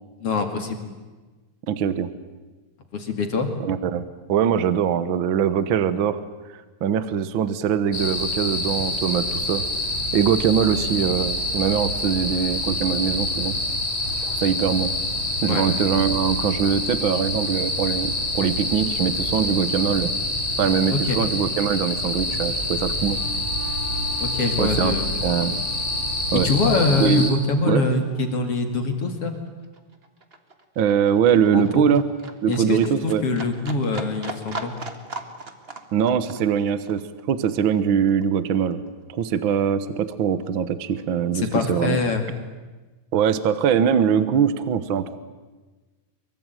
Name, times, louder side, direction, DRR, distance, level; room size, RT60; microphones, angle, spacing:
voice 1, 0.2-0.8 2.9-3.5 15.5-15.7 20.9-21.2 24.2-25.1 26.4-29.3 31.5-31.9 32.5-34.7 41.3-42.3, left 3 dB, 45° left, 5 dB, 2.9 m, -24 dB
voice 2, 1.7-2.1 3.6-4.0 4.3-6.2 6.5-9.6 10.1-13.5 14.2-14.9 15.4-20.1 20.6-23.2 24.6-25.6 26.3-26.5 27.0-27.3 27.7-27.8 30.8-32.0 32.4-33.2 35.9-38.8 39.1-42.0 43.1-45.2, right 8 dB, 75° right, 13 dB, 1.1 m, -22 dB
sound 1, 7.9-27.3, left 1 dB, 20° left, 3.7 m, -26 dB
Wind instrument woodwind instrument, 22.9-28.4, right 1 dB, 60° right, 5.4 m, -41 dB
Livestock farm animals working animals, 28.1-38.9 39.2-40.2 40.5-40.6, right 3 dB, 30° right, 1.1 m, -39 dB
24.5 x 23.5 x 9.1 m, 1.3 s
omnidirectional pair, 3.9 m